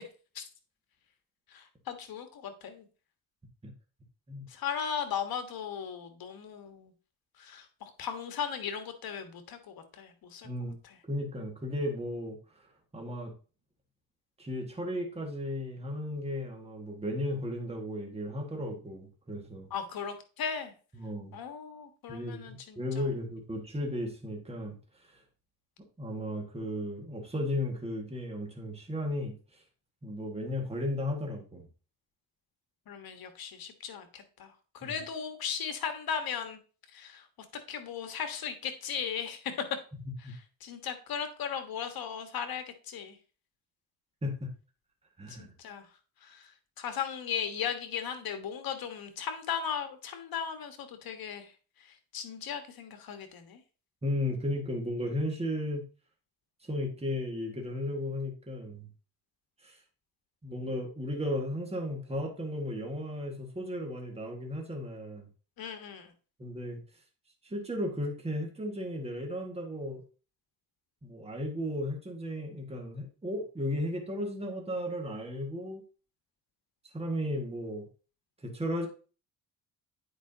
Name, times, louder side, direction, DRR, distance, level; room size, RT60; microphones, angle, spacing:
voice 1, 1.5-2.9 4.5-6.9 7.4-10.5 19.7-20.7 21.3-23.0 32.9-36.6 36.9-37.2 37.7-39.5 40.6-43.1 45.3-45.8 46.2-46.5 46.8-51.5 52.1-53.6 65.6-66.1, left 7 dB, 70° left, 8 dB, 1.4 m, -37 dB
voice 2, 10.4-10.8 11.1-12.4 12.9-13.3 14.4-19.7 20.9-21.3 22.1-24.8 26.0-29.3 30.0-31.7 34.8-34.9 40.2-40.3 44.2-44.5 45.2-45.5 54.0-55.8 56.7-58.9 59.6-59.8 60.4-65.3 66.4-66.8 67.4-70.0 71.0-75.8 76.9-77.9 78.4-78.9, left 1 dB, 15° right, 1 dB, 1.7 m, -35 dB
9.3 x 4.9 x 2.8 m, 0.36 s
cardioid pair, 100°, 38 cm